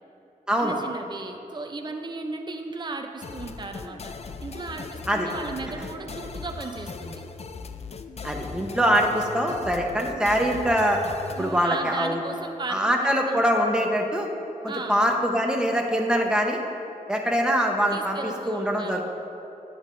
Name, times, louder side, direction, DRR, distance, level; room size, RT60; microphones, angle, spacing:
voice 1, 0.6-4.1 4.4-7.2 11.4-13.4 14.7-15.0 17.9-19.0, right 3 dB, 30° right, 4 dB, 0.6 m, -35 dB
sound 1, 3.2-11.6, left 4 dB, 45° left, 0.4 m, -39 dB
voice 2, 8.2-11.0 11.4-12.2 12.7-14.3 14.6-16.6 17.1-19.0, equal, 5° right, 1 dB, 1.0 m, -23 dB
10.5 x 8.4 x 2.6 m, 2.8 s
cardioid pair, 75°, 15 cm